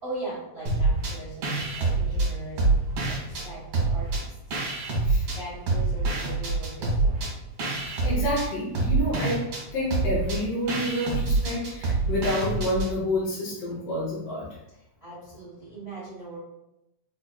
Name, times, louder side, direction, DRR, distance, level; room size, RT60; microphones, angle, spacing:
voice 1, 0.0-2.7 3.0-4.4 5.2-7.3 14.7-16.4, right 2 dB, 90° right, -10 dB, 0.5 m, -40 dB
sound 1, 0.7-1.1 1.4-3.5 3.7-5.4 5.7-12.9, right 3 dB, 60° right, 1.6 m, -26 dB
voice 2, 8.0-14.5, left 1 dB, 70° left, -6 dB, 1.5 m, -29 dB
5.0 x 2.5 x 2.2 m, 0.88 s
omnidirectional pair, 3.7 m